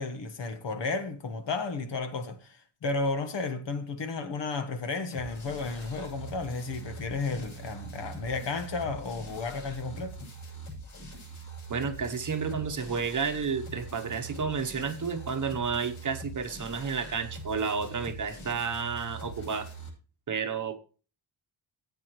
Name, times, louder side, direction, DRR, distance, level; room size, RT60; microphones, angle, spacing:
voice 1, 0.0-10.3, left 3 dB, 60° left, 1.4 m, -33 dB
sound 1, 5.1-19.9, right 2 dB, 80° left, 6.4 m, -43 dB
voice 2, 11.7-19.7 20.3-20.8, right 5 dB, 40° right, 1.0 m, -31 dB
14.5 x 8.5 x 3.1 m
wide cardioid pair, 120°, 48 cm